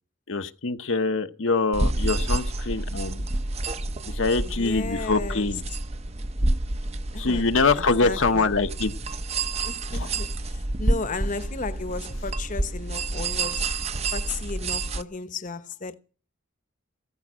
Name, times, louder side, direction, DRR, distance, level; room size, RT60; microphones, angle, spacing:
voice 1, 0.3-3.3 4.1-5.6 7.2-8.9 9.9-10.1, left 3 dB, 65° left, 1.0 m, -24 dB
sound 1, 1.7-15.0, right 2 dB, 30° right, 0.7 m, -29 dB
voice 2, 4.4-5.5 7.1-7.5 7.8-8.5 9.6-13.7 14.1-15.9, left 3 dB, 40° left, 1.0 m, -34 dB
16.0 x 14.0 x 6.3 m
head